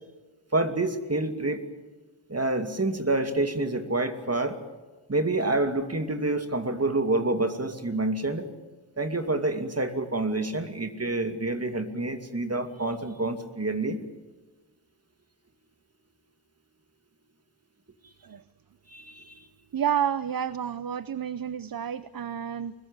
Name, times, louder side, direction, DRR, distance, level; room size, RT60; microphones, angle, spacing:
voice 1, 0.5-1.6 2.3-4.6 5.1-8.5 9.0-14.0 18.9-19.4, right 2 dB, 35° right, 7 dB, 2.6 m, -28 dB
voice 2, 19.7-22.7, right 8 dB, 55° right, 16 dB, 0.7 m, -30 dB
24.5 x 21.0 x 8.8 m, 1.3 s
wide cardioid pair, 80°, 43 cm